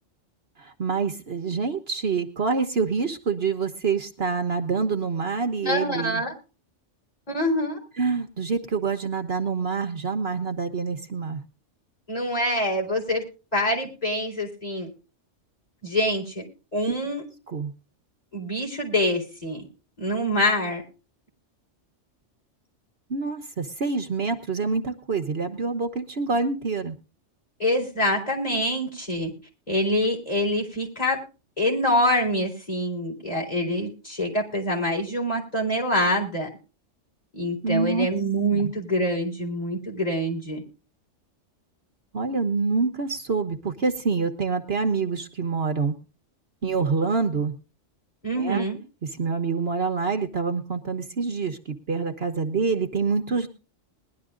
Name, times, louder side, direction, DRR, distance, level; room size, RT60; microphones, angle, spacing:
voice 1, 0.6-6.2 8.0-11.4 17.5-17.7 23.1-26.9 37.6-38.1 38.5-38.7 42.1-45.9 46.6-47.5 48.4-48.6 49.2-53.5, right 4 dB, 55° right, 7 dB, 1.3 m, -26 dB
voice 2, 5.6-6.3 7.3-7.8 12.1-13.2 13.5-14.9 15.8-16.4 16.7-17.2 18.3-19.7 20.0-20.8 27.6-29.3 29.7-31.2 31.6-36.5 37.3-40.6 48.2-48.8, equal, 30° left, -1 dB, 4.3 m, -25 dB
21.0 x 11.5 x 2.5 m, 0.33 s
omnidirectional pair, 1.3 m